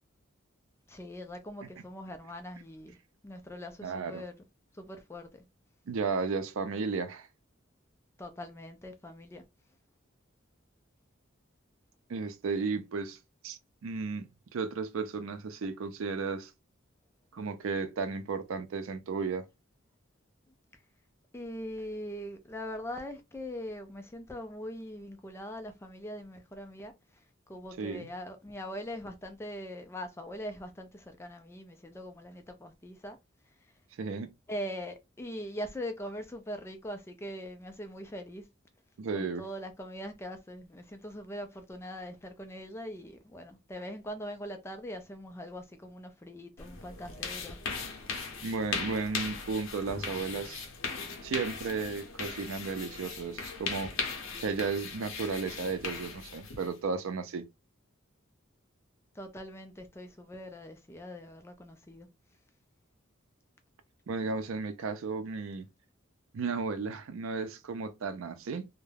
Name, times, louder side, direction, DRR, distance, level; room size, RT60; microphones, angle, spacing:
voice 1, 0.9-3.0 3.2-4.3 4.7-5.4 8.2-9.4 21.3-27.2 27.5-33.2 34.5-38.5 39.1-47.6 59.1-62.1, equal, 15° left, 0.3 m, -42 dB
voice 2, 3.8-4.2 5.9-7.3 12.1-13.2 13.4-16.5 17.3-19.5 27.8-28.1 34.0-34.3 39.0-39.5 48.4-50.7 51.2-54.0 54.4-57.5 64.1-65.7 66.3-68.7, right 4 dB, 75° right, 0.4 m, -34 dB
sound 1, 46.6-56.8, left 5 dB, 70° left, 0.7 m, -38 dB
2.3 x 2.1 x 3.2 m
head